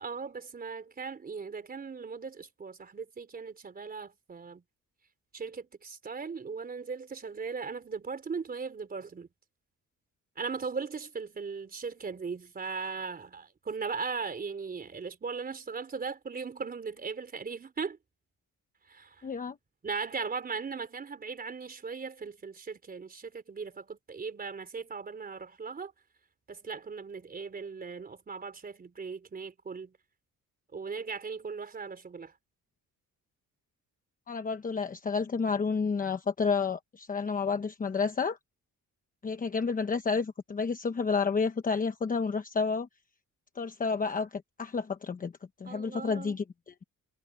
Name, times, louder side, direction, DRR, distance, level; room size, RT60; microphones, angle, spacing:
voice 1, 0.0-4.6 5.3-9.3 10.4-18.0 18.9-19.3 19.8-25.9 26.5-29.9 30.7-32.3 45.7-46.4, right 5 dB, 25° right, 4.0 m, -38 dB
voice 2, 19.2-19.6 34.3-38.4 39.2-42.9 43.6-45.3 45.6-46.8, left 5 dB, 25° left, 1.0 m, -30 dB
cardioid pair, 165°, 32 cm